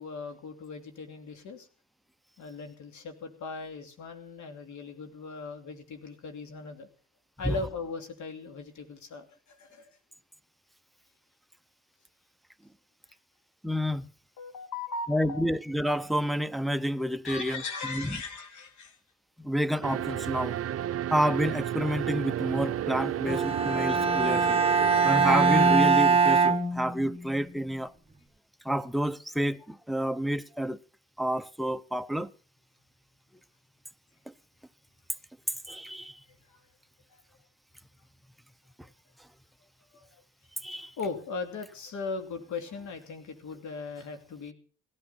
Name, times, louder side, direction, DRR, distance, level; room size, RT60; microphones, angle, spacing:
voice 1, 0.0-1.7 2.4-6.9 7.4-9.9 14.4-15.5 17.2-19.0 36.5-36.6 37.1-37.2 39.9-40.2 40.7-44.5, left 4 dB, 70° left, 2.9 m, -39 dB
voice 2, 13.6-14.1 15.1-17.6 17.9-18.2 19.4-20.6 21.1-24.6 25.0-27.9 28.6-30.8 31.2-32.3 34.3-34.4 35.7-36.2 40.6-40.9, equal, ahead, 0.6 m, -29 dB
sound 1, 19.8-25.8, right 11 dB, 50° right, 0.7 m, -32 dB
Bowed string instrument, 23.2-27.4, right 5 dB, 20° right, 1.5 m, -23 dB
17.0 x 13.0 x 4.2 m
cardioid pair, 90°, 30 cm